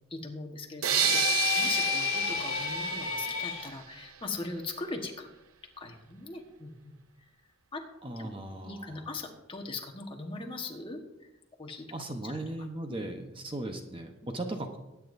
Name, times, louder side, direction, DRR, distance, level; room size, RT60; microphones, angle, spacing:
voice 1, 0.1-1.2 1.6-5.3 5.8-7.0 7.7-7.8 8.2-8.4 8.6-11.3 11.6-12.0 12.2-12.4 12.9-13.0, left 3 dB, 25° left, 2 dB, 1.4 m, -40 dB
sound 1, 0.8-3.8, right 9 dB, 85° right, 0.7 m, -31 dB
sound 2, 0.9-3.7, left 8 dB, 55° left, 2.7 m, -30 dB
voice 2, 8.0-9.1 11.9-14.8, right 1 dB, 25° right, 4 dB, 0.9 m, -37 dB
20.5 x 9.2 x 2.7 m, 1.0 s
head